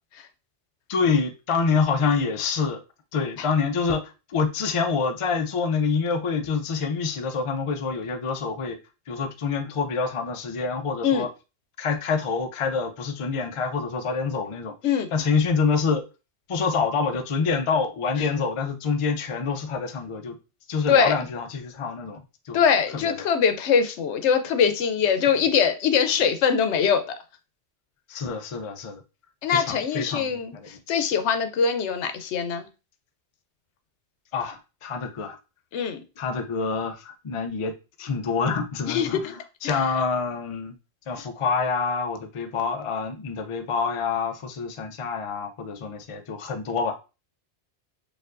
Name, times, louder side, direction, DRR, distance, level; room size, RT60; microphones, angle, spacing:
voice 1, 0.9-2.8 3.1-4.0 4.3-8.8 9.1-11.3 11.8-16.0 16.5-20.4 20.7-22.6 22.9-23.3 28.1-29.0 29.5-30.8 34.3-35.4 36.2-37.7 38.0-40.8 41.1-47.0, left 5 dB, 55° left, 0.3 m, -26 dB
voice 2, 22.5-27.0 29.4-32.7 35.7-36.0 38.9-39.3, left 7 dB, 80° left, 0.9 m, -22 dB
4.4 x 2.5 x 2.4 m
omnidirectional pair, 1.2 m